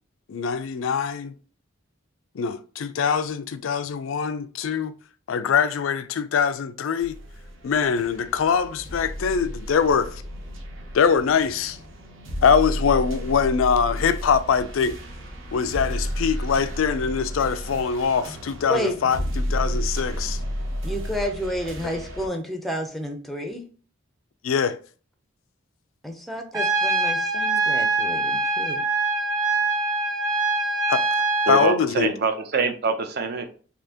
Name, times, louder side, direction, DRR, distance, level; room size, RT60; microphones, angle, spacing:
voice 1, 0.3-1.3 2.3-4.9 5.3-7.2 7.6-10.2 10.9-11.8 12.4-15.0 15.5-20.4 24.4-24.8 30.9-31.0 31.5-32.1, left 6 dB, 80° left, 0.4 m, -23 dB
sound 1, 7.0-22.3, equal, 75° right, 0.9 m, -32 dB
voice 2, 18.7-19.1 20.8-23.7 26.0-28.8, equal, ahead, 0.5 m, -31 dB
Trumpet, 26.5-31.8, right 3 dB, 20° right, 1.0 m, -23 dB
voice 3, 31.5-33.5, right 4 dB, 55° right, 0.6 m, -24 dB
4.2 x 2.8 x 2.8 m
head